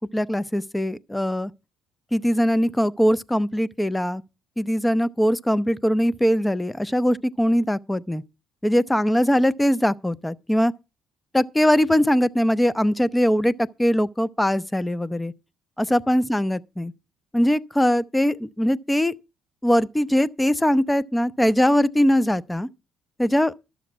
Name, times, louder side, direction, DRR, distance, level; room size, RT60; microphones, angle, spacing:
voice 1, 0.1-1.5 2.1-4.2 4.6-8.2 8.6-10.7 11.3-15.3 15.8-16.9 17.3-19.1 19.6-22.7 23.2-23.5, equal, 10° left, 0.6 m, -21 dB
12.5 x 7.1 x 5.7 m
figure-of-eight pair, 45°, 0 cm